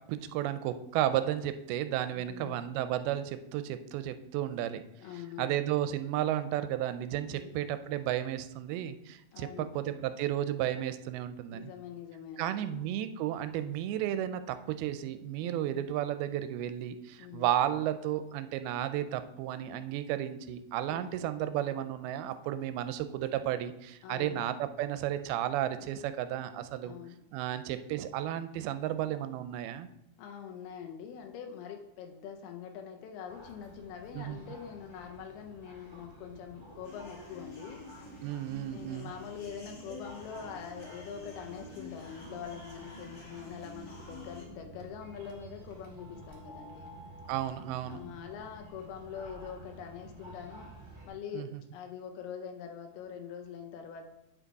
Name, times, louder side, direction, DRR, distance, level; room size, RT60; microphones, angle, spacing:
voice 1, 0.1-4.8 5.4-11.7 12.4-26.9 27.3-29.9 34.1-34.4 38.2-39.1 47.3-48.0 51.3-51.6, right 12 dB, 85° right, 11 dB, 2.4 m, -33 dB
voice 2, 2.1-2.7 5.0-5.6 7.3-7.5 9.3-9.7 11.5-12.9 15.4-15.7 17.2-17.5 20.9-21.2 24.0-24.5 26.8-27.2 30.2-37.8 38.7-46.9 47.9-50.7 51.1-54.1, left 8 dB, 80° left, 4 dB, 2.6 m, -44 dB
sound 1, 33.3-51.1, right 2 dB, 20° right, 0.8 m, -51 dB
sound 2, 36.8-44.4, left 2 dB, 40° left, 1.5 m, -49 dB
8.9 x 5.9 x 4.0 m, 0.84 s
omnidirectional pair, 4.5 m